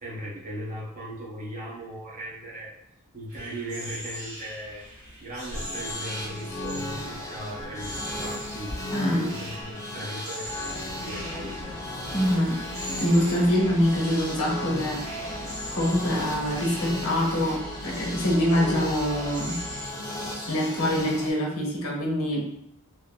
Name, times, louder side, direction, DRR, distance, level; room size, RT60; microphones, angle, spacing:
voice 1, 0.0-2.7 3.1-4.8 5.2-8.8 9.1-11.7, right 1 dB, 35° right, -7 dB, 0.9 m, -38 dB
sound 1, 3.3-20.8, equal, 70° right, 1.4 m, -41 dB
sound 2, 5.5-21.3, left 1 dB, 15° left, 0.4 m, -36 dB
voice 2, 8.9-9.3 12.1-12.6 12.9-15.0 15.7-19.6 20.5-22.5, equal, 80° left, -3 dB, 0.8 m, -25 dB
sound 3, 10.4-19.9, equal, 85° right, 1.1 m, -41 dB
3.0 x 2.0 x 2.4 m, 0.74 s
head